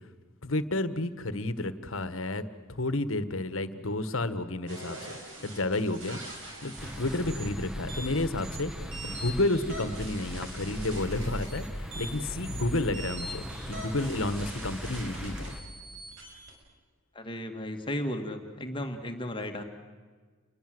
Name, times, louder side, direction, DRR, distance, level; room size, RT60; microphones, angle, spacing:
voice 1, 0.4-2.4 2.8-5.0 5.4-6.2 6.6-8.7 9.0-15.5, left 2 dB, 70° left, 12 dB, 1.5 m, -31 dB
sound 1, 4.7-16.5, right 1 dB, 60° right, 7.0 m, -43 dB
sound 2, 6.8-15.6, equal, 5° right, 1.4 m, -38 dB
voice 2, 17.1-19.6, left 1 dB, 25° left, 5 dB, 2.1 m, -34 dB
29.0 x 22.0 x 7.9 m, 1.5 s
head